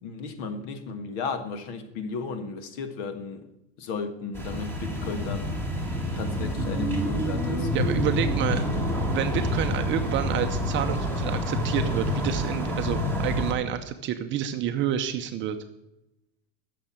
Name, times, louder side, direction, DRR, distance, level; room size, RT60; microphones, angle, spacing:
voice 1, 0.0-3.5 3.8-5.6 6.0-7.7, left 4 dB, 55° left, 10 dB, 1.6 m, -34 dB
sound 1, 4.3-13.5, left 1 dB, 5° left, 1.9 m, -27 dB
voice 2, 7.7-8.6 9.1-15.6, right 10 dB, 30° right, 7 dB, 0.6 m, -29 dB
9.9 x 6.9 x 8.6 m, 0.91 s
supercardioid pair, 140°, 39 cm